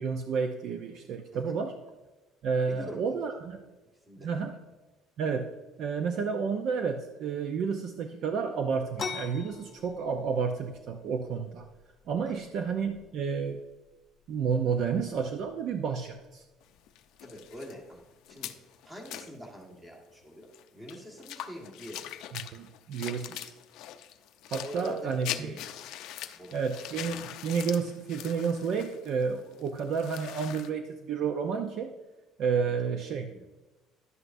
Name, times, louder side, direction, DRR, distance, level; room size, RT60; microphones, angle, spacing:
voice 1, 0.0-1.7 2.4-3.6 4.2-4.5 5.2-5.5 5.8-11.7 12.1-13.6 14.3-16.4 22.3-23.5 24.5-25.6 26.5-31.9 32.4-33.3, right 6 dB, 55° right, 6 dB, 0.5 m, -31 dB
voice 2, 2.7-3.2 4.1-4.3 12.2-12.4 17.2-18.5 18.8-22.1 24.6-25.6 26.3-26.8 33.1-33.4, equal, 15° right, 0 dB, 1.6 m, -45 dB
sound 1, 8.9-18.3, left 6 dB, 35° left, 0.8 m, -46 dB
sound 2, 16.6-19.4 19.9-20.0 20.2-30.7, left 12 dB, 70° left, 0.5 m, -42 dB
11.0 x 8.0 x 2.6 m, 1.1 s
cardioid pair, 150°, 0 cm